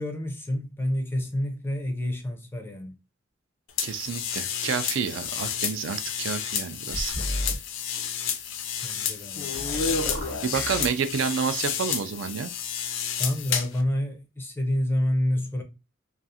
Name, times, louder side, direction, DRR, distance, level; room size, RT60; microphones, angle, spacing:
voice 1, 0.0-2.9 8.8-9.5 13.2-15.6, left 1 dB, 10° left, 0.4 m, -28 dB
sound 1, 3.8-13.8, left 7 dB, 75° left, 0.4 m, -30 dB
voice 2, 3.8-7.1 10.4-12.5, right 6 dB, 65° right, 0.3 m, -29 dB
sound 2, 6.9-7.6 9.5-10.9, equal, 40° right, 0.8 m, -33 dB
2.4 x 2.3 x 2.7 m
head